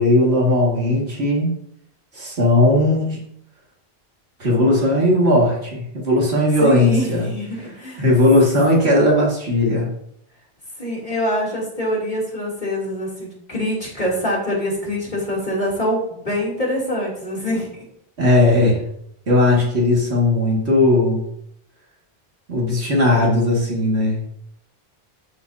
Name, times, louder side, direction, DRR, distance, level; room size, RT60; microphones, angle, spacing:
voice 1, 0.0-1.5 2.1-3.2 4.4-7.3 8.0-9.9 18.2-18.8 19.3-21.2 22.5-24.2, left 1 dB, 85° right, -3 dB, 2.3 m, -17 dB
voice 2, 6.6-8.0 10.8-17.7, equal, 45° left, -5 dB, 3.1 m, -24 dB
13.0 x 5.4 x 2.7 m, 0.73 s
omnidirectional pair, 1.1 m